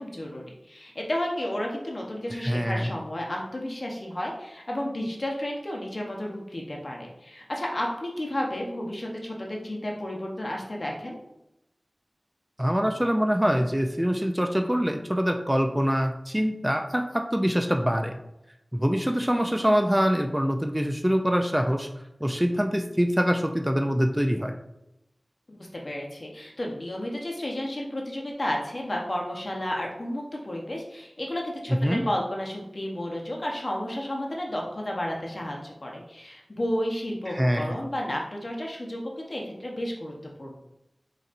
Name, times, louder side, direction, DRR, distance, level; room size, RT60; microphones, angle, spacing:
voice 1, 0.0-11.2 25.5-40.5, left 1 dB, 50° left, -1 dB, 0.8 m, -32 dB
voice 2, 2.3-2.9 12.6-18.2 18.7-21.9 22.2-24.5 31.8-32.0 37.3-37.8, equal, 10° right, 4 dB, 0.3 m, -24 dB
4.1 x 4.0 x 2.5 m, 0.86 s
wide cardioid pair, 60°, 0 cm